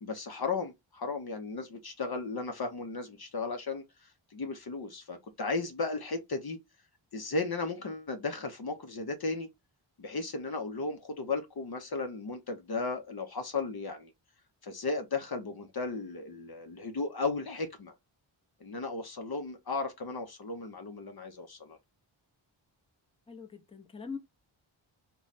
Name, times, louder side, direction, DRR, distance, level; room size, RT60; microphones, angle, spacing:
voice 1, 0.0-3.8 4.3-6.6 7.1-9.5 10.0-14.1 14.6-17.9 18.6-21.8, left 3 dB, 50° left, 0.8 m, -35 dB
voice 2, 23.3-24.2, left 5 dB, 10° left, 0.7 m, -42 dB
3.1 x 2.3 x 3.9 m
cardioid pair, 60°, 49 cm